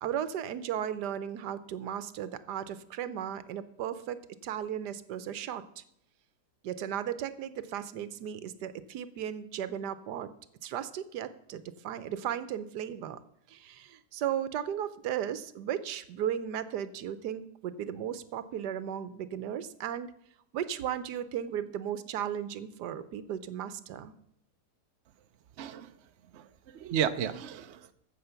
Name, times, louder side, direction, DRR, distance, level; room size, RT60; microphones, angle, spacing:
voice 1, 0.0-5.8 6.6-10.3 10.6-13.2 13.5-20.1 20.5-24.1, right 9 dB, 85° right, 13 dB, 1.3 m, -35 dB
voice 2, 25.6-25.9 26.3-27.9, right 9 dB, 55° right, 10 dB, 0.8 m, -33 dB
14.5 x 7.0 x 5.7 m, 0.76 s
omnidirectional pair, 1.7 m